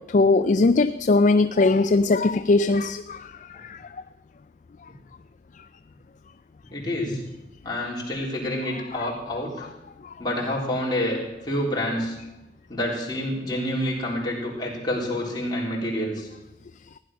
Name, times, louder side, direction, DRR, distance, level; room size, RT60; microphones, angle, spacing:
voice 1, 0.0-3.9 8.9-9.1, left 3 dB, 45° left, 11 dB, 0.4 m, -20 dB
voice 2, 6.7-7.2 7.6-9.7 10.2-11.2 11.5-12.1 12.7-16.3, left 1 dB, 25° left, -4 dB, 3.8 m, -28 dB
16.0 x 10.5 x 6.2 m, 1.0 s
head